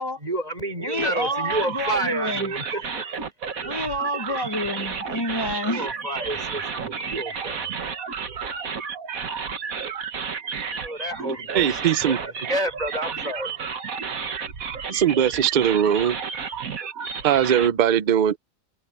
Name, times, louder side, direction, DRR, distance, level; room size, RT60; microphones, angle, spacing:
voice 1, 0.0-3.2 5.6-7.8 10.8-13.6, right 1 dB, 30° right, 5.9 m, -30 dB
voice 2, 0.8-2.5 3.6-5.8, equal, 20° left, 0.7 m, -28 dB
sound 1, 1.0-17.7, right 6 dB, 90° right, 2.0 m, -32 dB
voice 3, 11.5-12.2 14.9-16.2 17.2-18.4, right 9 dB, 45° right, 0.6 m, -20 dB
omnidirectional pair, 1.4 m